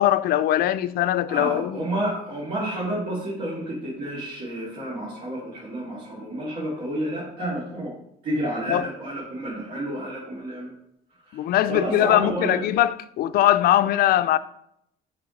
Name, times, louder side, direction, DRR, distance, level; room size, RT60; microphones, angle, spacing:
voice 1, 0.0-1.8 8.7-8.9 11.3-14.4, left 13 dB, 65° left, 0.4 m, -21 dB
voice 2, 1.3-7.9 8.2-10.7 11.2-12.6, right 1 dB, 65° right, 2.6 m, -30 dB
6.9 x 3.5 x 5.1 m
cardioid pair, 110°, 17 cm